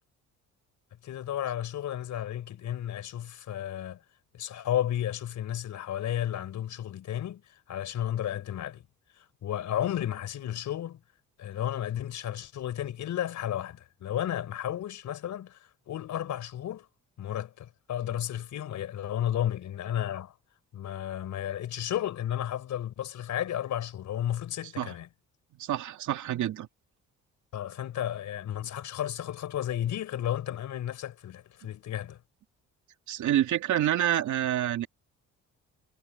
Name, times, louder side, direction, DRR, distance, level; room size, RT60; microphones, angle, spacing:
voice 1, 1.0-4.0 4.3-8.8 9.2-11.0 11.4-16.9 17.2-20.3 20.7-25.1 27.5-32.2, left 11 dB, 70° left, 4.5 m, -33 dB
voice 2, 25.6-26.7 33.1-34.9, right 11 dB, 75° right, 2.4 m, -27 dB
cardioid pair, 90°, 30 cm